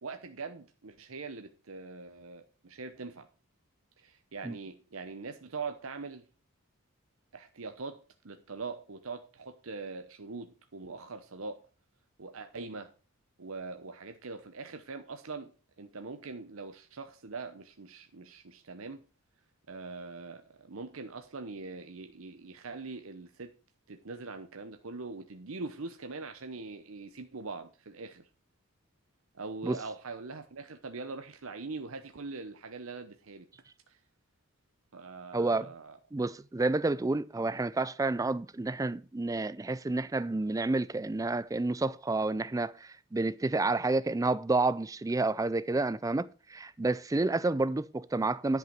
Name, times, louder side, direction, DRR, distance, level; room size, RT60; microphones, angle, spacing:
voice 1, 0.0-3.3 4.0-6.2 7.3-11.6 12.2-12.9 13.4-15.5 15.8-19.0 19.7-23.5 23.9-28.3 29.3-33.5 33.9-34.0 34.9-36.0, right 4 dB, 65° right, 0.9 m, -42 dB
voice 2, 35.3-35.7 36.1-48.6, right 2 dB, 15° right, 0.4 m, -30 dB
10.5 x 5.7 x 6.0 m
head